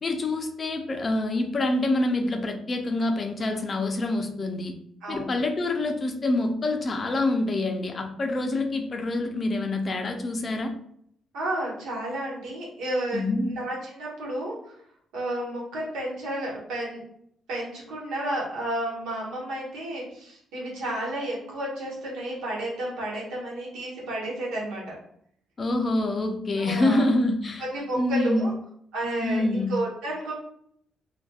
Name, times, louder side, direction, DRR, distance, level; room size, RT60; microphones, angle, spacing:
voice 1, 0.0-4.7 5.1-10.7 13.1-13.5 25.6-27.6 28.0-28.5 29.2-29.8, left 2 dB, 40° left, 5 dB, 0.4 m, -26 dB
voice 2, 5.0-5.4 11.3-13.2 13.5-14.7 15.1-17.0 17.5-24.9 26.6-27.1 27.6-28.5 28.9-30.3, right 1 dB, 90° right, -4 dB, 1.0 m, -31 dB
2.6 x 2.2 x 2.3 m, 0.69 s
cardioid pair, 90°, 0 cm